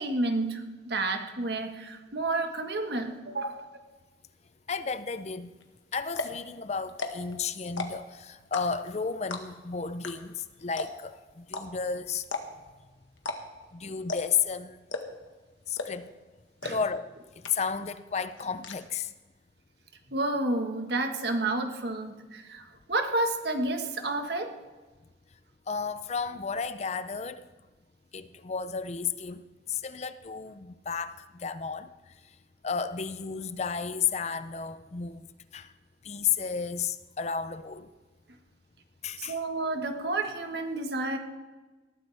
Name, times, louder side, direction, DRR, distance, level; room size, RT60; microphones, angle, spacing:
voice 1, 0.0-3.6 16.6-16.8 20.1-24.6 39.2-41.2, right 2 dB, 60° right, 5 dB, 1.5 m, -30 dB
voice 2, 4.7-5.5 5.9-12.2 13.7-14.8 15.7-16.1 16.7-17.1 17.5-19.1 25.7-27.4 28.1-29.4 29.7-31.9 32.6-35.3 35.5-35.7 36.0-37.9 39.0-39.4, left 6 dB, 35° left, 12 dB, 0.5 m, -32 dB
sound 1, 5.6-5.7 6.1-6.4 6.9-7.3 7.6-8.1 8.5-8.9 9.3-9.6 10.0-10.1 10.4-10.5 10.8-11.1 11.5-11.6 12.2-12.7 13.2-13.4 13.6-13.7 14.1-14.4 14.9-15.3 15.8-16.1 16.6-16.7 17.1-17.2 17.4-17.9 18.1-18.7, left 3 dB, 85° left, 1.5 m, -34 dB
19.5 x 14.0 x 3.4 m, 1.2 s
head